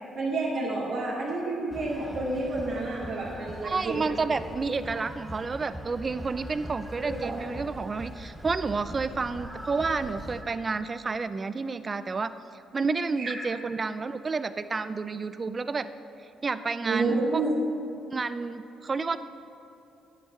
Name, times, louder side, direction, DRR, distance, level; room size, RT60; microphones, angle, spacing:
voice 1, 0.1-4.0 7.1-7.3 13.2-13.3 16.8-17.5, right 2 dB, 60° right, -8 dB, 2.5 m, -29 dB
sound 1, 1.7-10.4, right 1 dB, 5° right, 1.1 m, -42 dB
voice 2, 3.6-12.3 12.7-15.9 16.4-17.4 18.1-19.2, right 4 dB, 35° right, 13 dB, 0.5 m, -30 dB
10.0 x 8.0 x 6.9 m, 2.8 s
supercardioid pair, 70°, 0 cm